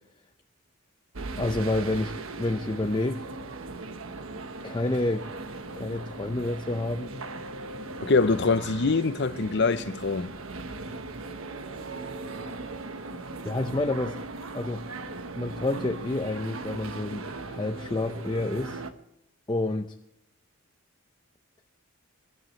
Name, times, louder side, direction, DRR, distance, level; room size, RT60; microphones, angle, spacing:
sound 1, 1.1-18.9, right 3 dB, 70° right, 1.2 m, -38 dB
voice 1, 1.4-3.2 4.6-5.3 5.8-7.2 13.4-14.2 14.5-14.8 15.4-18.8 19.5-20.0, left 2 dB, 20° left, 0.6 m, -29 dB
voice 2, 8.0-10.3, left 4 dB, 55° left, 0.7 m, -24 dB
24.0 x 13.0 x 3.2 m
head